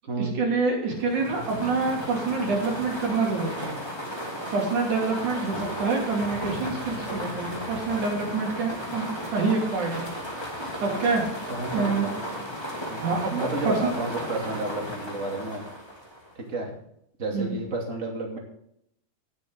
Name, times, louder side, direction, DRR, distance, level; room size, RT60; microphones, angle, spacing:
voice 1, 0.2-3.8 4.5-10.1 10.8-11.2 11.7-12.1 13.0-13.3 13.7-13.9 17.3-17.5, right 4 dB, 50° right, -1 dB, 3.7 m, -26 dB
sound 1, 0.9-16.4, equal, 10° left, 1.3 m, -35 dB
voice 2, 11.5-12.1 12.9-13.1 13.3-15.6 16.3-16.7 17.2-18.4, right 2 dB, 25° right, 0 dB, 2.3 m, -31 dB
18.5 x 7.3 x 3.8 m, 0.71 s
omnidirectional pair, 4.9 m